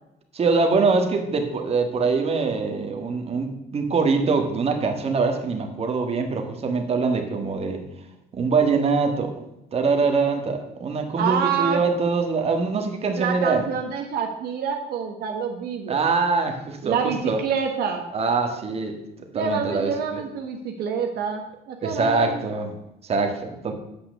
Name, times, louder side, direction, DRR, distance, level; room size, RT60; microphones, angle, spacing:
voice 1, 0.3-7.9 8.3-9.4 9.7-13.6 15.9-17.4 18.1-20.2 21.8-22.8 23.0-23.7, right 4 dB, 35° right, 4 dB, 1.7 m, -23 dB
voice 2, 11.2-11.8 13.2-16.1 16.8-18.0 19.3-22.4 23.7-23.8, right 6 dB, 70° right, 3 dB, 1.2 m, -27 dB
8.5 x 5.8 x 6.6 m, 0.86 s
cardioid pair, 110°, 17 cm